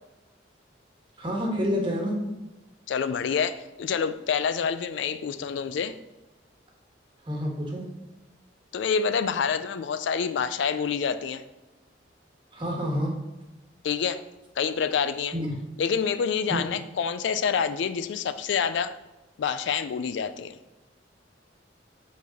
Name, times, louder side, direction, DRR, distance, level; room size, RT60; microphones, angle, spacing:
voice 1, 1.2-2.2 7.3-7.8 12.5-13.1 15.3-15.5 16.5-16.6, equal, 25° right, -1 dB, 1.3 m, -28 dB
voice 2, 2.9-5.9 8.7-11.4 13.8-14.2 14.6-15.4 15.8-18.9 19.4-20.6, left 6 dB, 70° left, 12 dB, 0.3 m, -27 dB
5.0 x 4.0 x 5.2 m, 1.0 s
head